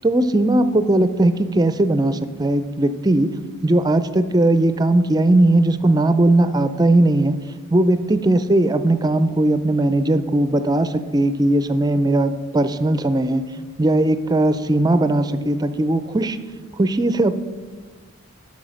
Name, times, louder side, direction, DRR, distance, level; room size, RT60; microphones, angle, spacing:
voice 1, 0.0-3.3 3.6-7.4 7.7-13.4 13.8-16.4 16.8-17.4, right 1 dB, 20° right, 11 dB, 0.4 m, -18 dB
9.0 x 5.8 x 6.3 m, 1.4 s
head